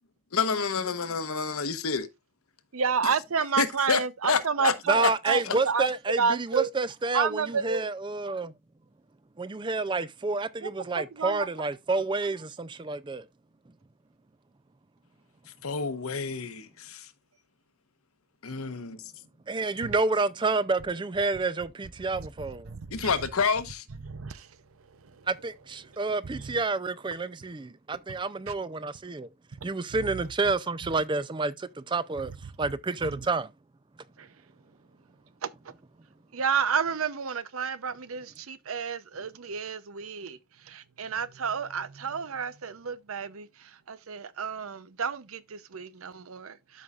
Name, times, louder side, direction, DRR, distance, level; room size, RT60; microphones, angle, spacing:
voice 1, 0.3-2.1 3.6-5.1 5.4-5.6 15.6-17.1 18.4-19.0 22.9-23.8, left 5 dB, 90° left, 1.0 m, -28 dB
voice 2, 2.7-5.0 5.3-5.9 6.2-6.7 7.1-7.8 10.6-10.7 11.0-11.5 19.8-20.0 22.1-23.2 24.0-24.5 25.0-25.2 26.3-26.6 28.5-28.6 29.9-30.2 33.0-33.3 34.2-34.3 35.4-35.5 36.3-40.4 40.6-46.8, right 6 dB, 80° right, 0.7 m, -31 dB
voice 3, 4.9-8.5 9.4-13.2 19.5-22.7 25.3-29.3 29.6-32.3 32.6-33.5, right 3 dB, 20° right, 0.4 m, -29 dB
12.5 x 5.5 x 2.4 m
head